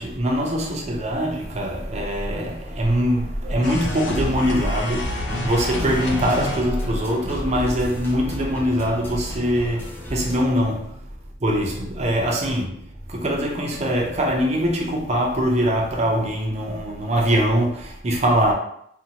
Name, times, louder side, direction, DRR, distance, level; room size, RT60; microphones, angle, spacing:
voice 1, 0.0-11.0 11.4-12.8 13.1-18.5, equal, 40° right, 0.5 m, -23 dB
sound 1, 3.6-7.0, left 1 dB, 85° left, 0.5 m, -28 dB
sound 2, 5.2-10.5, equal, 10° left, 0.5 m, -34 dB
2.6 x 2.1 x 2.8 m
head